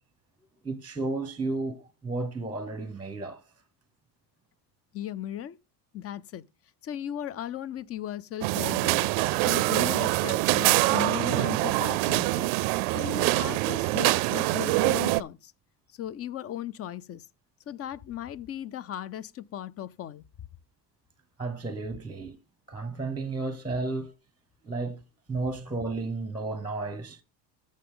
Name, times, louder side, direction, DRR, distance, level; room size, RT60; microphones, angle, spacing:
voice 1, 0.6-3.4 21.4-22.4 22.7-24.1 24.6-25.0 25.3-27.2, right 3 dB, 10° right, 0.8 m, -33 dB
voice 2, 4.9-5.6 5.9-6.4 6.8-9.1 9.5-12.5 12.9-15.5 15.9-17.3 17.7-20.2, left 11 dB, 30° left, 0.4 m, -37 dB
sound 1, 8.4-15.2, right 21 dB, 70° right, 0.6 m, -25 dB
14.0 x 5.2 x 3.7 m
cardioid pair, 115°, 49 cm